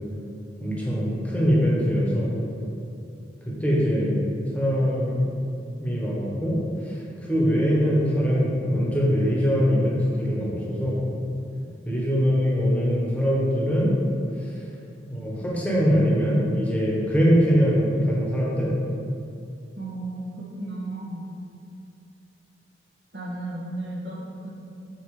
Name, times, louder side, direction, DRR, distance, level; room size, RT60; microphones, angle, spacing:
voice 1, 0.6-2.3 3.6-4.1 4.5-5.2 5.8-6.5 7.3-11.0 11.8-13.9 15.1-18.7, equal, 10° left, -5 dB, 1.1 m, -22 dB
voice 2, 19.8-21.3 23.1-24.5, right 2 dB, 65° right, -4 dB, 1.3 m, -34 dB
5.5 x 4.4 x 4.9 m, 2.7 s
head